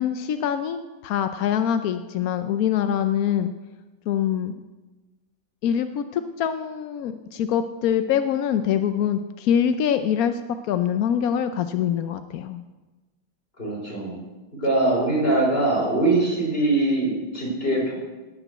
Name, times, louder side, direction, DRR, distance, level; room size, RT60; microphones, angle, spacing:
voice 1, 0.0-3.5 4.1-4.5 5.6-12.6, left 9 dB, 70° left, 9 dB, 0.8 m, -24 dB
voice 2, 13.6-14.2 14.5-17.9, right 2 dB, 30° left, -4 dB, 4.9 m, -22 dB
18.0 x 6.2 x 7.9 m, 1.2 s
omnidirectional pair, 2.1 m